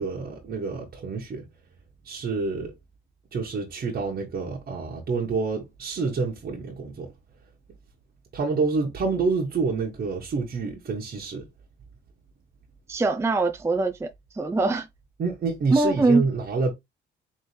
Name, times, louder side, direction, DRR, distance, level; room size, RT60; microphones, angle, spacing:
voice 1, 0.0-1.4 2.0-2.7 3.3-7.1 8.3-11.5 15.2-16.7, right 4 dB, 50° right, 1.4 m, -28 dB
voice 2, 12.9-14.1 14.3-14.9 15.7-16.2, right 3 dB, 15° right, 0.5 m, -22 dB
4.3 x 3.2 x 3.3 m
cardioid pair, 90°, 20 cm